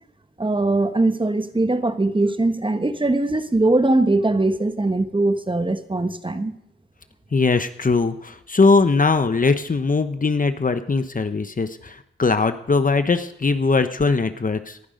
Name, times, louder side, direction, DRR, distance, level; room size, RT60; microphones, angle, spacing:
voice 1, 0.4-6.5, right 2 dB, 25° right, 10 dB, 1.3 m, -21 dB
voice 2, 7.3-14.8, left 4 dB, 40° left, 10 dB, 1.0 m, -20 dB
18.5 x 11.5 x 5.2 m, 0.78 s
cardioid pair, 55°, 20 cm